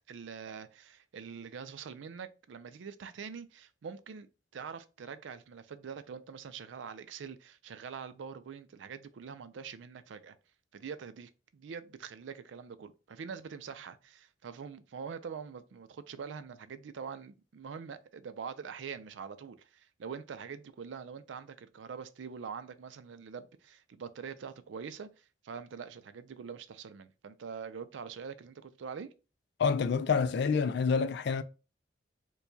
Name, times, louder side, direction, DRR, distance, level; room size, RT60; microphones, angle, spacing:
voice 1, 0.1-10.4 10.7-29.1, right 6 dB, 75° right, 0.4 m, -44 dB
voice 2, 29.6-31.4, left 5 dB, 65° left, 0.4 m, -27 dB
4.6 x 2.2 x 2.7 m
head